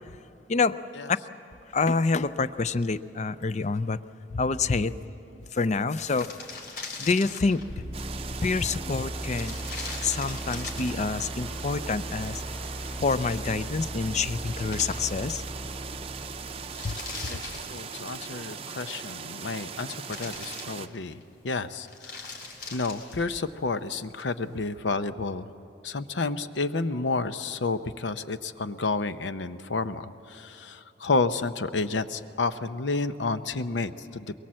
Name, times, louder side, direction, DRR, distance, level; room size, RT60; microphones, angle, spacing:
voice 1, 0.9-1.3 17.3-22.4 22.7-25.5 25.8-34.3, left 3 dB, 90° left, 11 dB, 0.8 m, -30 dB
voice 2, 1.7-4.0 4.3-4.9 5.5-6.3 7.0-7.6 8.4-9.5 10.0-12.4 13.0-15.4 16.8-17.0, left 4 dB, 40° left, 14 dB, 0.5 m, -27 dB
sound 1, 5.6-5.7 5.8-7.7 9.3-11.1 13.8-13.9 14.1-15.5 15.8-15.9 16.5-18.2 19.2-19.8 20.1-21.2 21.7-23.4, left 3 dB, 65° left, 3.5 m, -41 dB
sound 2, 7.7-17.5, equal, 5° left, 0.7 m, -38 dB
sound 3, 7.9-20.9, right 6 dB, 35° right, 0.6 m, -40 dB
23.0 x 22.0 x 7.6 m, 2.7 s
head